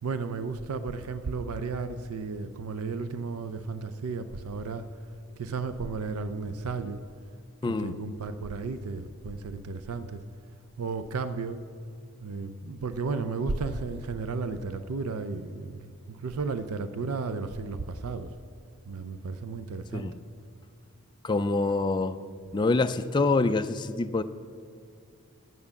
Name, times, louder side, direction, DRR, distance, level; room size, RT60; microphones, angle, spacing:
voice 1, 0.0-4.8 5.4-7.0 7.7-10.2 10.8-11.6 12.2-15.8 16.1-18.3 18.9-20.1, right 4 dB, 80° right, 11 dB, 0.5 m, -33 dB
voice 2, 7.6-8.0 19.9-20.1 21.2-22.2 22.5-24.2, left 3 dB, 20° left, 9 dB, 0.3 m, -26 dB
11.0 x 8.8 x 7.1 m, 2.1 s
head